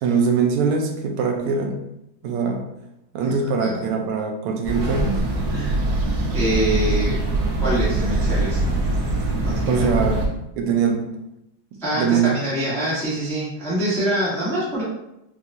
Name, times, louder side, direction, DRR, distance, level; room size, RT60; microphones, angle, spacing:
voice 1, 0.0-1.8 2.2-2.7 3.1-5.3 9.7-10.2 10.6-11.1 11.7-12.3, right 5 dB, 85° right, 3 dB, 1.5 m, -22 dB
sound 1, 4.6-10.3, right 1 dB, 65° right, 1.3 m, -23 dB
voice 2, 5.5-5.8 6.3-7.2 7.6-8.6 9.4-9.8 11.8-14.8, right 1 dB, 5° left, -8 dB, 0.4 m, -25 dB
4.4 x 2.3 x 2.6 m, 0.86 s
omnidirectional pair, 2.4 m